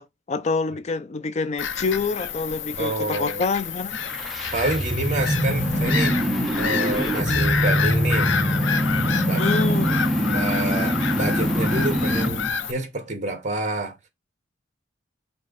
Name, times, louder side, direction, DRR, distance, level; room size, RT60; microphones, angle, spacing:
voice 1, 0.0-4.0 9.4-10.1, left 4 dB, 40° left, 0.4 m, -27 dB
Bird vocalization bird call bird song / Gull seagull, 1.6-12.7, left 7 dB, 80° left, 0.6 m, -29 dB
voice 2, 2.8-3.4 4.5-6.2 6.6-8.3 9.2-9.5 9.7-9.9 10.2-14.0, right 2 dB, 40° right, 2.2 m, -28 dB
sound 1, 3.9-12.5, equal, ahead, 1.2 m, -24 dB
5.3 x 3.3 x 5.5 m
head